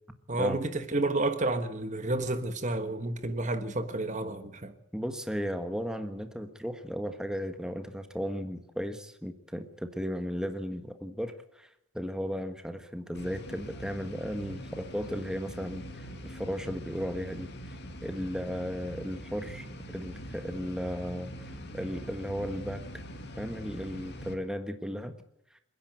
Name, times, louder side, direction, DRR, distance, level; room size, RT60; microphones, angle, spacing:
voice 1, 0.3-4.7, right 2 dB, 35° right, 1.3 m, -30 dB
voice 2, 4.9-11.7 11.9-23.0 23.4-25.1, equal, 5° right, 1.4 m, -35 dB
sound 1, 13.1-24.3, equal, 50° left, 2.4 m, -43 dB
28.0 x 10.5 x 9.3 m
head